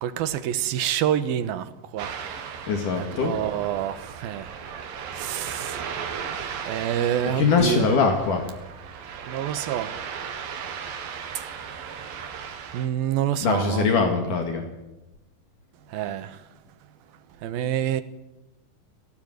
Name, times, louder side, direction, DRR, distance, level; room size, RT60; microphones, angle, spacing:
voice 1, 0.0-2.2 3.0-4.5 5.1-5.8 6.4-8.0 9.3-9.9 11.3-11.5 12.7-14.0 14.3-14.4 15.9-16.4 17.4-18.0, right 10 dB, 90° right, 3.0 m, -27 dB
Ocean, 2.0-12.9, right 7 dB, 70° right, 3.4 m, -36 dB
voice 2, 2.7-3.3 7.3-8.4 13.4-14.7, left 5 dB, 65° left, 3.5 m, -22 dB
19.5 x 18.0 x 9.4 m
omnidirectional pair, 4.1 m